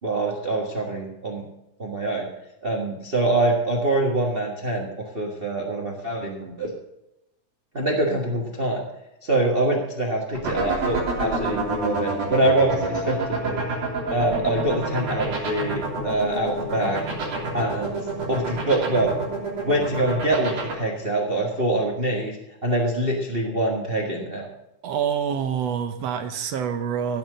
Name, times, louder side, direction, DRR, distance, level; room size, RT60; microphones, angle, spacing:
voice 1, 0.0-1.4 1.8-2.3 2.6-4.9 5.1-6.7 7.7-8.8 9.2-13.6 14.1-17.0 17.5-18.0 18.3-19.1 19.6-22.4 22.6-24.4, right 2 dB, 30° right, -1 dB, 1.1 m, -24 dB
sound 1, 10.3-20.7, right 4 dB, 90° right, 4.8 m, -27 dB
voice 2, 24.8-27.2, right 8 dB, 70° right, 9 dB, 1.7 m, -26 dB
16.0 x 6.0 x 6.7 m, 0.90 s
omnidirectional pair, 3.5 m